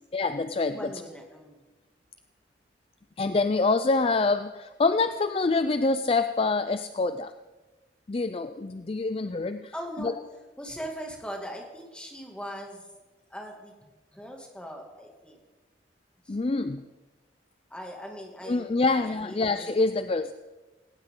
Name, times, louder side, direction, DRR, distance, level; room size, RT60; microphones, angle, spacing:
voice 1, 0.1-1.0 3.2-7.3 8.1-9.7 10.0-10.1 16.3-16.8 18.5-20.3, left 3 dB, 30° left, 10 dB, 0.4 m, -26 dB
voice 2, 0.7-1.6 9.7-10.1 10.6-12.9 13.3-15.4 16.2-16.4 17.7-19.7, equal, 5° left, 1 dB, 2.3 m, -40 dB
18.0 x 18.0 x 3.8 m, 1.2 s
head